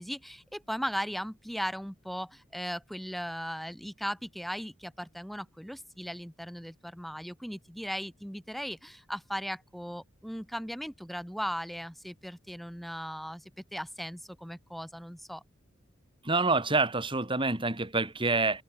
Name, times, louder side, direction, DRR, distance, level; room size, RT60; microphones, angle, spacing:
voice 1, 0.0-15.4, equal, ahead, 3.7 m, -37 dB
voice 2, 16.2-18.6, right 3 dB, 25° right, 3.1 m, -27 dB
open air
head